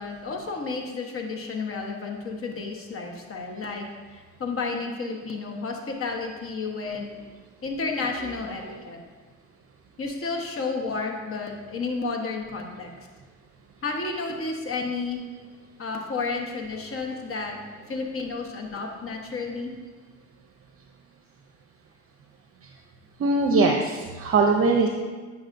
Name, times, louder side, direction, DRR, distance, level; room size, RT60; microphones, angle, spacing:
voice 1, 0.0-7.1 7.6-9.0 10.0-12.9 13.8-15.3 15.8-17.6 17.9-19.7, left 4 dB, 45° left, 1 dB, 1.2 m, -31 dB
voice 2, 23.2-24.9, right 3 dB, 50° right, 2 dB, 0.6 m, -21 dB
8.8 x 5.9 x 2.6 m, 1.5 s
cardioid pair, 90°, 30 cm